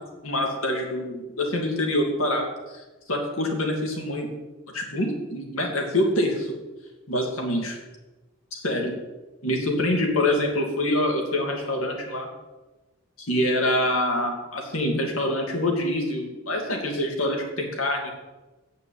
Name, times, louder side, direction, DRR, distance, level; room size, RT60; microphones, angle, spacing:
voice 1, 0.2-4.3 4.7-6.5 7.1-7.7 8.5-9.0 9.4-12.3 13.2-18.1, left 1 dB, 90° left, 1 dB, 2.3 m, -25 dB
8.2 x 6.9 x 8.4 m, 1.1 s
head